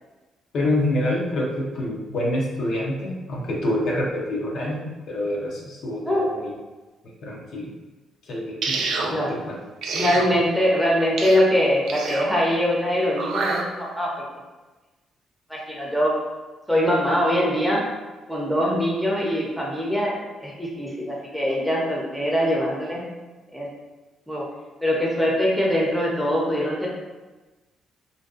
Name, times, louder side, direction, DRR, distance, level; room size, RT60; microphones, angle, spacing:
voice 1, 0.5-6.5 7.0-7.7 8.2-9.6 9.9-10.0, left 1 dB, 65° left, -3 dB, 0.6 m, -27 dB
sound 1, 8.6-9.1 9.8-10.3 11.2-11.4 11.9-12.3 13.2-13.6, right 4 dB, 75° right, 0.3 m, -27 dB
voice 2, 9.9-14.1 15.5-16.1 16.7-17.8 18.3-20.1 20.4-23.0 23.5-23.7 24.3-24.4 24.8-26.9, equal, ahead, -4 dB, 0.6 m, -22 dB
2.5 x 2.2 x 2.4 m, 1.2 s
cardioid pair, 90°, 0 cm